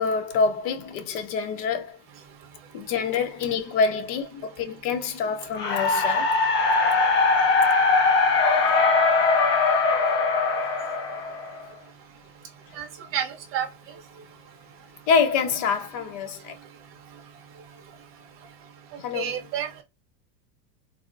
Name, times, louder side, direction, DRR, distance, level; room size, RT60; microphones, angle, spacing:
voice 1, 0.0-2.0 2.7-6.4 15.1-16.6 19.0-19.5, left 5 dB, 50° left, 0.8 m, -26 dB
sound 1, 5.6-11.7, left 4 dB, 25° left, 0.5 m, -21 dB
voice 2, 13.1-13.7 18.9-19.8, right 9 dB, 25° right, 0.7 m, -30 dB
3.8 x 2.0 x 2.5 m
supercardioid pair, 135°, 50 cm